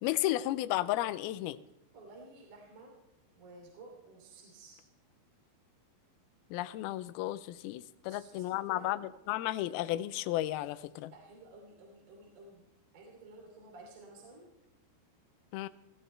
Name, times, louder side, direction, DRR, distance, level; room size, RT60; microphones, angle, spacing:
voice 1, 0.0-1.6 6.5-11.1 15.5-15.7, left 15 dB, 85° left, 13 dB, 2.2 m, -33 dB
voice 2, 1.9-2.9 3.3-4.8 8.0-9.1 11.1-12.6 12.9-14.5, right 3 dB, 50° right, -1 dB, 4.2 m, -53 dB
19.0 x 14.0 x 3.3 m, 0.93 s
omnidirectional pair, 5.1 m